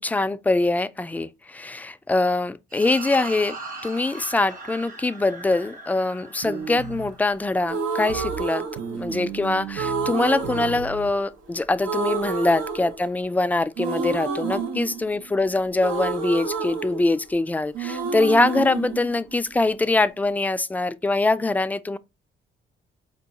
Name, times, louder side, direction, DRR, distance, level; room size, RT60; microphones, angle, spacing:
voice 1, 0.0-3.6 3.8-22.0, left 2 dB, 10° left, 0.3 m, -23 dB
sound 1, 2.7-9.2, right 3 dB, 40° right, 1.1 m, -40 dB
sound 2, 6.4-7.1 8.1-8.4 8.8-11.1, right 7 dB, 60° right, 0.5 m, -35 dB
sound 3, 7.6-9.3 9.8-11.5 11.8-13.4 13.8-17.5 17.7-19.8, right 5 dB, 90° right, 0.9 m, -29 dB
4.4 x 2.3 x 4.0 m
cardioid pair, 90°, 20 cm